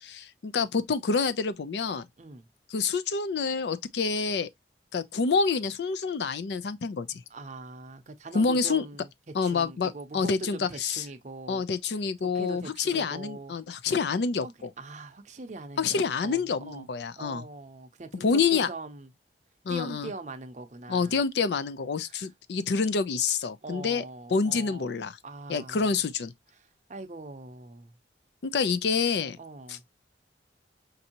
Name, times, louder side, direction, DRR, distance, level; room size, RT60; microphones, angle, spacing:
voice 1, 0.0-2.1 2.7-4.5 4.9-7.2 8.3-8.8 9.3-11.0 11.5-14.7 15.8-17.4 18.2-18.7 19.7-20.1 20.9-24.0 24.3-25.2 25.5-26.3 28.4-29.4 29.7-29.8, left 5 dB, 70° left, 0.4 m, -27 dB
voice 2, 2.2-2.5 7.3-11.6 12.2-13.6 14.4-16.9 17.2-19.1 19.7-21.2 22.0-22.3 23.6-24.9 25.2-26.0 26.5-27.9 29.4-29.8, right 2 dB, 40° right, 0.6 m, -42 dB
5.3 x 2.6 x 2.8 m
head